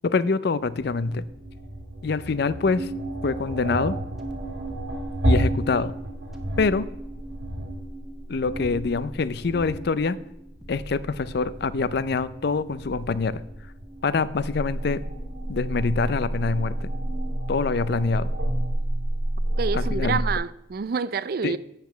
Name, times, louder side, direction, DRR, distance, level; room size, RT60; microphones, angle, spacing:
voice 1, 0.0-1.2 2.0-2.9 3.2-4.0 5.2-5.9 6.6-6.9 8.3-10.2 10.7-13.4 14.0-15.0 15.5-16.9 17.5-18.3 19.7-20.2 21.4-21.5, left 4 dB, 55° left, 0.4 m, -25 dB
sound 1, 0.7-20.4, right 1 dB, 70° right, 1.6 m, -30 dB
sound 2, 4.2-5.5 6.3-8.0 8.5-9.9 10.6-12.2 12.8-14.2 14.9-16.5, equal, ahead, 1.0 m, -44 dB
voice 2, 19.6-21.6, right 5 dB, 50° right, 0.4 m, -27 dB
8.2 x 6.5 x 6.8 m
head